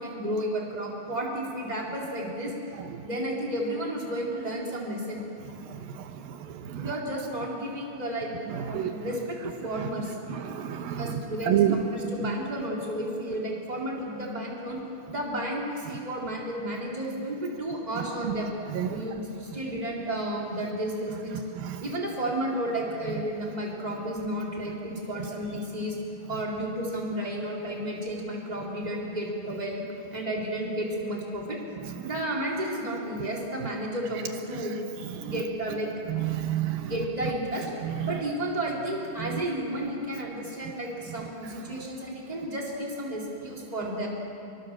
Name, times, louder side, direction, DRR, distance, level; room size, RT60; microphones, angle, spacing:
voice 1, 0.0-2.5 3.0-5.2 6.8-8.3 8.6-10.2 11.0-14.8 15.1-18.5 18.9-21.4 21.8-26.0 26.3-29.8 30.1-31.6 32.0-34.7 35.2-35.9 36.8-37.7 38.0-44.1, right 1 dB, 10° right, -2 dB, 3.7 m, -32 dB
voice 2, 5.6-6.9 8.5-8.9 10.3-11.2 11.5-11.8 18.7-19.0 21.6-21.8 32.0-32.1 35.2-35.4 36.1-36.9 37.8-38.1 39.2-39.4, right 11 dB, 80° right, 7 dB, 2.8 m, -29 dB
26.0 x 23.0 x 7.4 m, 2.8 s
omnidirectional pair, 4.2 m